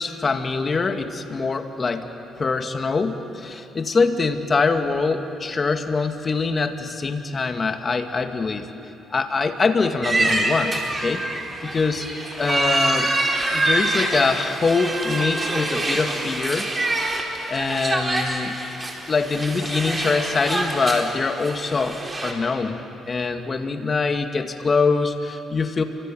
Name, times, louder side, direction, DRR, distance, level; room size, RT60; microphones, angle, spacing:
voice 1, 0.0-2.1 2.4-8.7 9.1-11.2 11.6-12.1 12.4-13.1 13.5-16.7 17.1-18.6 19.1-25.8, left 4 dB, 35° left, 6 dB, 2.1 m, -24 dB
sound 1, 10.0-22.3, right 2 dB, 25° right, 4.4 m, -26 dB
29.5 x 25.0 x 7.7 m, 2.8 s
cardioid pair, 90°, 0 cm